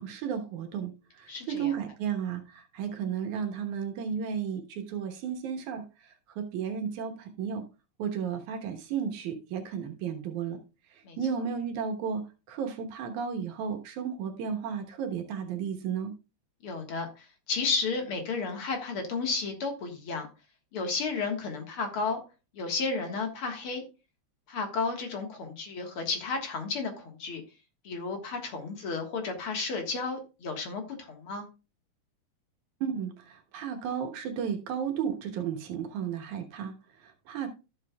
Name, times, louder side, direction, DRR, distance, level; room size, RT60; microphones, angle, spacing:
voice 1, 0.0-7.6 8.0-10.6 10.9-16.1 32.8-37.5, right 7 dB, 85° right, 2.7 m, -34 dB
voice 2, 1.3-1.7 11.0-11.2 16.6-20.3 20.7-22.2 22.5-23.8 24.5-27.4 27.8-31.4, left 4 dB, 55° left, 2.2 m, -32 dB
13.5 x 7.4 x 2.3 m
omnidirectional pair, 3.3 m